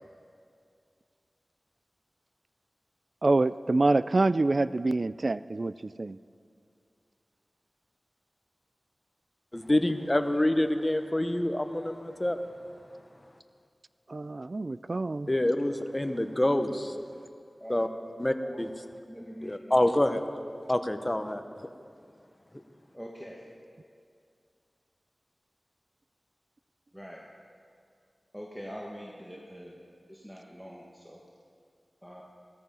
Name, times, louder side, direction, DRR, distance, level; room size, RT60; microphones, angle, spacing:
voice 1, 3.2-6.2 14.1-15.3, right 2 dB, 55° right, 16 dB, 0.4 m, -26 dB
voice 2, 9.5-12.4 15.3-17.0 17.7-17.9 18.2-18.7 19.4-20.2 20.7-21.7, left 1 dB, 25° left, 7 dB, 1.0 m, -27 dB
voice 3, 19.1-19.8 22.9-23.5 26.9-27.3 28.3-29.8 30.1-31.2 32.0-32.2, equal, 5° right, -3 dB, 1.6 m, -44 dB
17.5 x 14.0 x 5.6 m, 2.3 s
wide cardioid pair, 50°, 0 cm